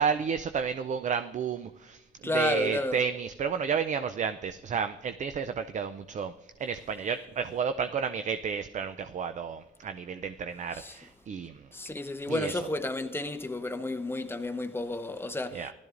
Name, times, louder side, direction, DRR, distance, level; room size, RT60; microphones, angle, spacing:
voice 1, 0.0-2.0 2.3-6.3 6.6-11.6 12.3-12.6 15.5-15.7, right 6 dB, 40° right, 0.4 m, -31 dB
voice 2, 2.2-3.0 10.7-11.0 11.7-15.7, left 2 dB, 10° left, 0.7 m, -31 dB
15.5 x 12.0 x 2.5 m
cardioid pair, 90°, 20 cm